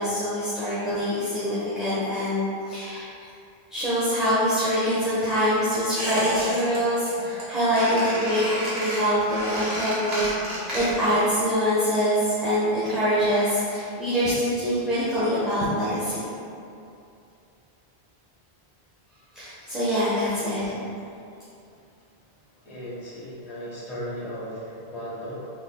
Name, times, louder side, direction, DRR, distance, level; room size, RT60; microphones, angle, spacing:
voice 1, 0.0-3.1 3.7-16.4 19.3-20.8, equal, ahead, -14 dB, 0.7 m, -24 dB
Squeak, 6.0-6.8 7.1-7.4 7.7-11.2 11.4-11.5, equal, 75° right, 1.5 m, -31 dB
voice 2, 22.6-25.5, equal, 40° left, -9 dB, 1.2 m, -36 dB
4.0 x 3.9 x 2.2 m, 2.6 s
omnidirectional pair, 1.1 m